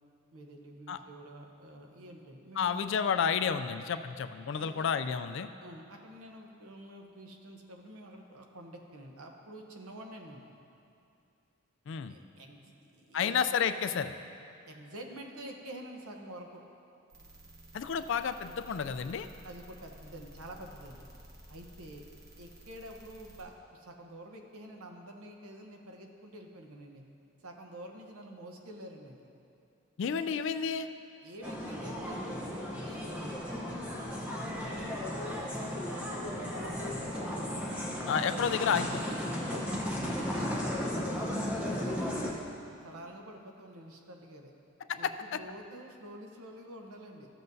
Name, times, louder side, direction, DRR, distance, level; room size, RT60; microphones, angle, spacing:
voice 1, 0.3-2.8 4.5-4.9 5.6-10.5 12.0-13.3 14.7-16.6 19.4-21.1 21.5-22.1 22.4-27.0 27.4-29.2 31.2-37.4 39.4-42.4 42.8-44.5 44.9-47.3, right 1 dB, 85° right, 2 dB, 0.9 m, -48 dB
voice 2, 2.6-5.5 11.9-12.2 13.1-14.1 17.7-19.3 30.0-30.9 38.1-39.0 44.9-45.1, left 7 dB, 55° left, 10 dB, 0.3 m, -30 dB
sound 1, 17.1-23.4, equal, 45° right, 1.2 m, -53 dB
sound 2, 31.4-42.3, equal, 5° right, 0.8 m, -35 dB
13.5 x 7.6 x 2.7 m, 2.6 s
head